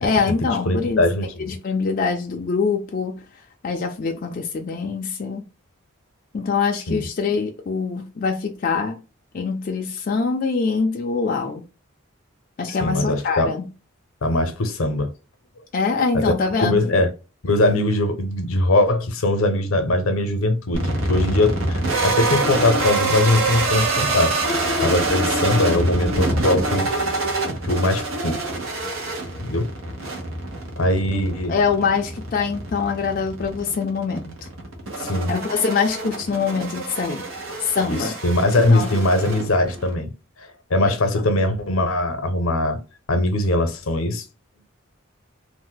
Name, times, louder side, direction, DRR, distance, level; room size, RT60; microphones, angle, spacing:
voice 1, 0.0-1.0 1.4-3.2 3.6-5.4 6.3-9.0 9.3-11.6 12.6-13.7 15.7-16.9 31.1-31.2 31.5-34.5 35.3-37.3 37.6-38.1 38.7-39.0 41.2-41.3, left 5 dB, 40° left, 0.3 m, -24 dB
voice 2, 0.6-1.5 6.9-7.0 12.8-13.5 14.2-15.1 16.1-17.1 17.4-26.9 27.6-28.4 29.4-29.7 30.8-31.5 35.0-35.3 37.9-40.1 40.7-42.8 43.1-44.2, left 1 dB, 80° left, 0.7 m, -21 dB
sound 1, 20.7-39.9, right 2 dB, 80° right, 0.9 m, -26 dB
2.6 x 2.1 x 3.8 m
head